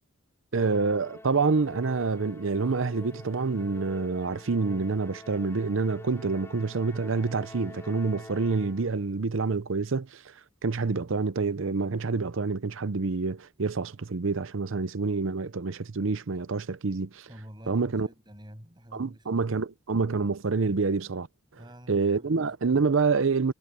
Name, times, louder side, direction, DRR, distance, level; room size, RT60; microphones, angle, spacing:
Musical instrument, 0.5-9.0, left 1 dB, 15° left, 3.3 m, -47 dB
voice 1, 0.5-10.2 10.6-17.3 17.7-18.1 18.9-21.3 21.9-23.5, right 4 dB, 70° right, 0.7 m, -27 dB
voice 2, 17.3-19.3 21.5-22.5, equal, 20° right, 6.9 m, -48 dB
head